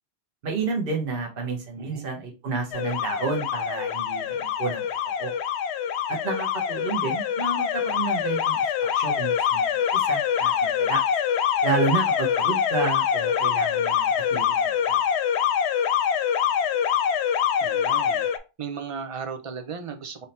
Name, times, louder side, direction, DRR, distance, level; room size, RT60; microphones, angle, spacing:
voice 1, 0.4-4.8 5.2-5.3 6.1-11.0 11.6-14.5 14.9-15.0, right 4 dB, 60° right, 1 dB, 1.1 m, -30 dB
voice 2, 1.8-2.1 17.6-18.3 18.6-20.3, right 6 dB, 40° right, 6 dB, 0.5 m, -35 dB
Alarm, 2.7-18.4, left 8 dB, 90° left, 0.8 m, -24 dB
3.5 x 2.7 x 4.2 m, 0.28 s
omnidirectional pair, 1.1 m